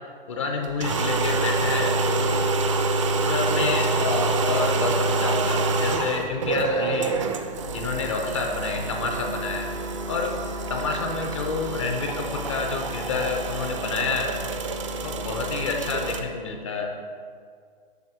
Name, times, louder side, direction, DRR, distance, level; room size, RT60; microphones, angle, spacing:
voice 1, 0.3-2.7 3.2-7.2 7.7-9.7 10.1-10.4 10.7-14.4 15.0-16.9, left 4 dB, 35° left, 2 dB, 0.5 m, -28 dB
sound 1, 0.6-16.2, right 3 dB, 35° right, 0.4 m, -27 dB
7.8 x 2.7 x 6.0 m, 2.1 s
hypercardioid pair, 150°, 29 cm